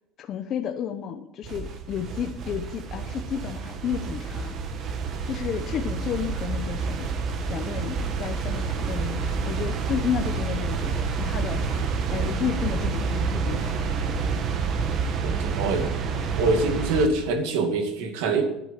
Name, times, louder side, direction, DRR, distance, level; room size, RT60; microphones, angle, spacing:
voice 1, 0.2-4.6 5.2-7.1 7.5-14.0, left 8 dB, 35° left, 4 dB, 0.8 m, -32 dB
sound 1, 1.4-17.1, right 5 dB, 35° right, 1.2 m, -28 dB
voice 2, 15.2-15.9 16.4-18.4, right 3 dB, 85° right, 5 dB, 2.3 m, -24 dB
11.0 x 9.2 x 7.4 m, 0.88 s
cardioid pair, 175°, 0 cm